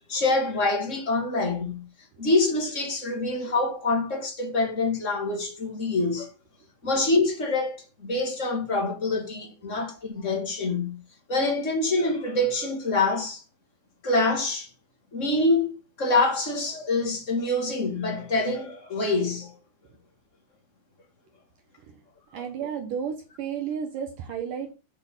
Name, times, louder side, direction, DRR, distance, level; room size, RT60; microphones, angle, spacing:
voice 1, 0.1-1.8 2.2-6.3 6.8-11.0 11.3-13.4 14.0-14.7 15.1-15.7 16.0-19.5 22.3-22.5, left 2 dB, 25° left, 1.6 m, -25 dB
voice 2, 22.3-24.7, right 7 dB, 80° right, 1.9 m, -32 dB
8.7 x 6.1 x 7.3 m
omnidirectional pair, 5.5 m